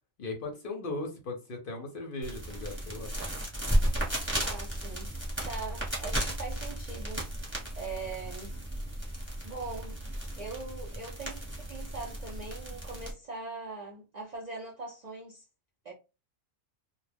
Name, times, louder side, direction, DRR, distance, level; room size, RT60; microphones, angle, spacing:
voice 1, 0.2-3.1, left 2 dB, 55° left, 0.7 m, -38 dB
sound 1, 2.2-13.1, right 1 dB, 10° right, 0.9 m, -34 dB
voice 2, 4.4-5.1 5.4-7.2 7.8-8.5 9.4-10.0 10.4-15.5 15.8-15.9, right 3 dB, 55° right, 0.4 m, -41 dB
2.2 x 2.2 x 3.3 m
omnidirectional pair, 1.3 m